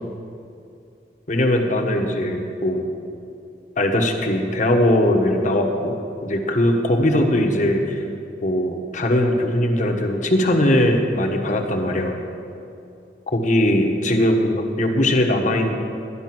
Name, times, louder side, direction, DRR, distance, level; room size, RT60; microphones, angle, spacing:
voice 1, 1.3-2.9 3.8-6.0 6.2-8.0 8.4-12.1 13.3-15.7, left 1 dB, 45° left, 3 dB, 1.3 m, -20 dB
11.5 x 11.5 x 6.0 m, 2.6 s
head